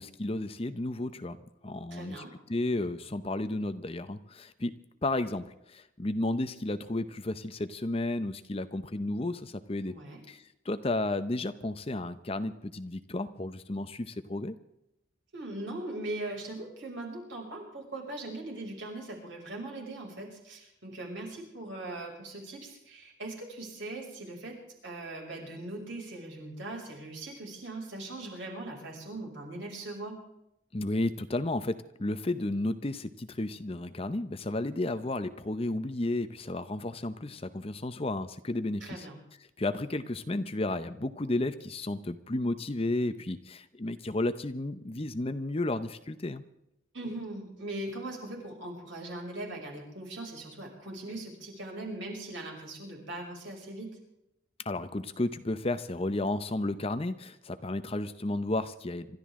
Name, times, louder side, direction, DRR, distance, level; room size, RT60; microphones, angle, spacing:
voice 1, 0.0-1.4 1.6-9.9 10.3-14.6 30.7-39.1 39.6-46.4 54.6-59.2, left 2 dB, 30° left, 11 dB, 0.7 m, -33 dB
voice 2, 1.9-2.3 9.8-10.2 15.3-24.6 24.8-30.2 38.8-39.2 46.9-53.9, right 2 dB, 65° right, 0 dB, 6.1 m, -40 dB
27.0 x 13.0 x 3.7 m, 0.85 s
head